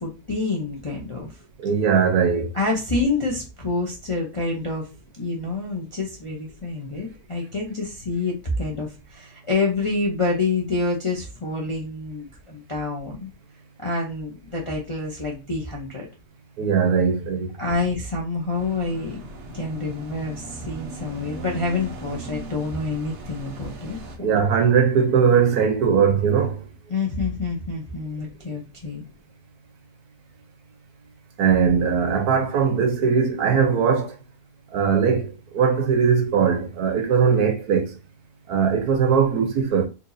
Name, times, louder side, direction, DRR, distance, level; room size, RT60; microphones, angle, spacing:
voice 1, 0.0-1.4 2.5-4.9 5.2-13.3 13.8-16.1 17.6-19.2 19.5-24.3 26.9-29.0, left 3 dB, 35° left, 0.5 m, -27 dB
voice 2, 1.6-2.5 16.6-17.5 24.2-26.6 31.4-34.2 34.7-37.9 38.5-39.9, right 6 dB, 75° right, 1.2 m, -20 dB
sound 1, 18.5-24.2, right 1 dB, 55° right, 0.9 m, -38 dB
4.4 x 2.7 x 2.6 m
omnidirectional pair, 1.7 m